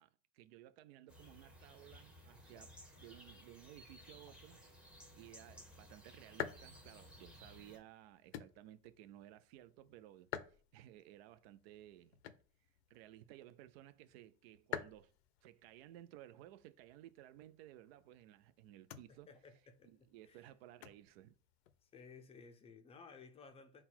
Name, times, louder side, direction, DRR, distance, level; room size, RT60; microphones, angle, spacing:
voice 1, 0.0-4.6 5.1-10.3 10.7-12.2 12.9-15.1 15.4-19.3 19.8-21.4, right 13 dB, 75° right, 0.5 m, -58 dB
sound 1, 1.1-7.8, equal, 5° right, 1.0 m, -58 dB
sound 2, 5.1-22.2, left 10 dB, 85° left, 0.5 m, -52 dB
voice 2, 19.1-20.5 21.8-23.8, left 5 dB, 20° left, 0.5 m, -58 dB
3.9 x 2.3 x 4.3 m
supercardioid pair, 125°, 31 cm